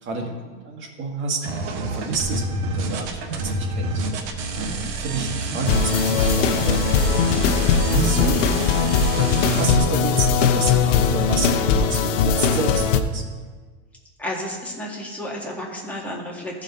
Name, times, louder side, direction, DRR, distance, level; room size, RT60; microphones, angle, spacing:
voice 1, 0.0-1.5 1.8-4.0 4.5-6.8 7.9-8.5 9.2-13.2, right 4 dB, 30° right, 1 dB, 1.6 m, -29 dB
sound 1, 1.4-9.7, right 2 dB, 60° right, 1.4 m, -28 dB
sound 2, 5.7-13.0, left 6 dB, 85° left, 0.9 m, -20 dB
voice 2, 14.2-16.6, left 1 dB, 5° left, -4 dB, 2.2 m, -32 dB
15.5 x 5.1 x 4.0 m, 1.4 s
supercardioid pair, 130°, 36 cm